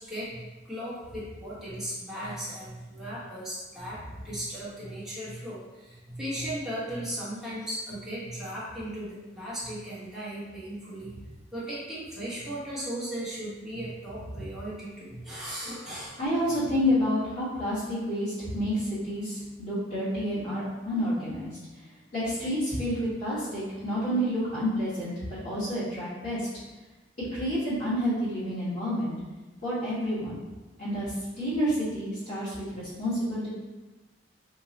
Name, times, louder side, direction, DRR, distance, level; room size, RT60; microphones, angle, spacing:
voice 1, 0.0-11.1 11.5-16.2 32.7-32.8, right 1 dB, ahead, -10 dB, 1.1 m, -37 dB
voice 2, 16.2-21.5 22.1-26.5 27.3-29.1 29.6-30.4 30.8-33.5, equal, 60° left, -13 dB, 1.4 m, -29 dB
3.0 x 2.3 x 3.9 m, 1.2 s
head